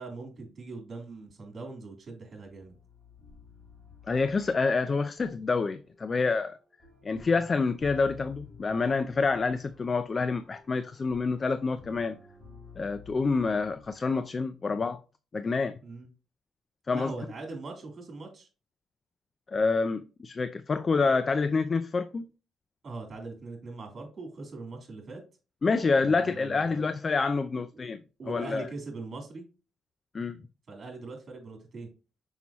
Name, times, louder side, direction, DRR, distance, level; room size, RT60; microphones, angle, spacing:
voice 1, 0.0-2.7 15.8-16.1 16.9-18.5 22.8-25.2 26.0-26.9 27.6-27.7 28.2-29.5 30.7-31.9, right 3 dB, 40° right, 3.4 m, -41 dB
sound 1, 2.4-14.5, left 6 dB, 5° left, 3.8 m, -52 dB
voice 2, 4.1-6.6 7.0-12.1 12.8-15.0 15.3-15.8 16.9-17.1 19.5-22.2 25.6-28.0 28.3-28.7 30.1-30.4, left 4 dB, 35° left, 0.4 m, -27 dB
6.0 x 5.5 x 3.0 m
cardioid pair, 90°, 0 cm